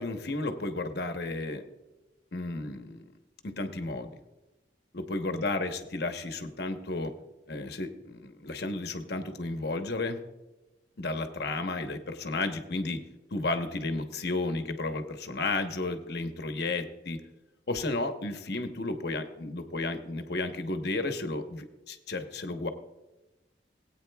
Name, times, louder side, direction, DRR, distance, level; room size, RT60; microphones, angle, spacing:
voice 1, 0.0-1.6 2.3-3.0 3.4-4.1 4.9-7.1 7.5-10.2 11.0-13.0 13.3-17.2 17.7-22.7, left 2 dB, 60° left, 7 dB, 1.0 m, -33 dB
19.0 x 8.9 x 2.3 m, 1.0 s
head